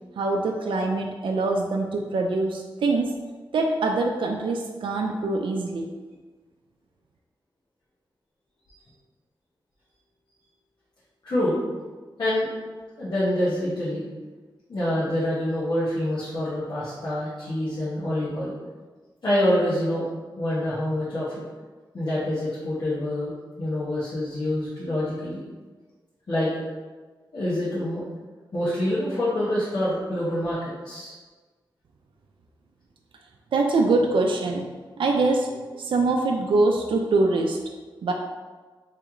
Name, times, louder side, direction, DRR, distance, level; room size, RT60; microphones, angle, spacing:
voice 1, 0.2-3.2 3.5-5.9 33.5-34.6 35.0-37.6 38.0-38.1, right 3 dB, 75° right, 2 dB, 0.4 m, -24 dB
voice 2, 11.2-11.6 12.2-12.5 13.0-14.0 14.7-18.5 19.2-20.1 20.4-21.4 21.9-23.3 23.6-25.4 26.3-26.7 27.3-28.0 28.5-31.1, left 1 dB, 60° left, -11 dB, 1.2 m, -26 dB
3.3 x 3.0 x 3.6 m, 1.4 s
cardioid pair, 75°, 9 cm